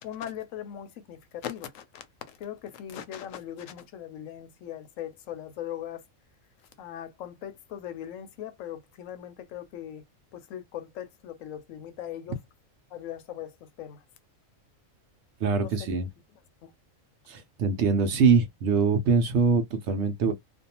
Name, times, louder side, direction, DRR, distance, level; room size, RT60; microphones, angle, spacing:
voice 1, 0.0-6.0 6.8-10.0 10.3-12.4 12.9-14.0 15.6-15.9 16.6-16.7, left 10 dB, 75° left, 1.0 m, -39 dB
voice 2, 15.4-16.1 17.3-20.3, right 5 dB, 65° right, 0.8 m, -23 dB
2.5 x 2.2 x 2.8 m
omnidirectional pair, 1.4 m